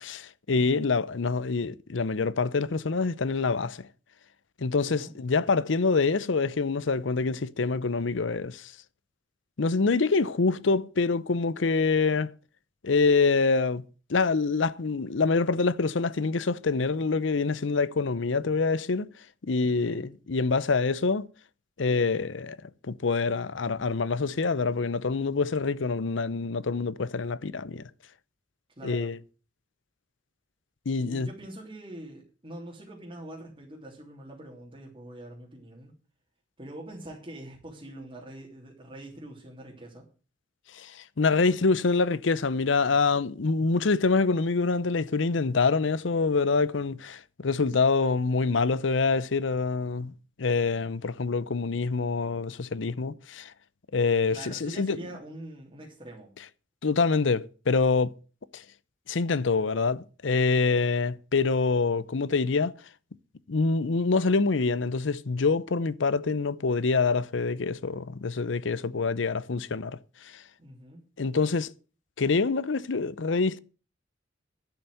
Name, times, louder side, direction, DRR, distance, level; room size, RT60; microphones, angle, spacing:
voice 1, 0.0-3.9 4.6-8.7 9.6-12.3 12.8-13.8 14.1-19.1 19.5-21.3 21.8-22.6 22.8-27.8 28.8-29.2 30.9-31.3 40.7-50.1 50.4-53.5 53.9-55.0 56.8-58.1 58.5-58.6 59.1-62.7 63.5-70.0 70.2-70.4 71.2-71.7 72.2-73.6, left 4 dB, 80° left, 0.7 m, -26 dB
voice 2, 4.8-5.1 19.7-20.0 28.8-29.1 31.0-35.9 36.6-40.0 54.3-56.3 70.6-71.0, right 1 dB, 30° right, 3.2 m, -44 dB
11.5 x 7.0 x 7.8 m
head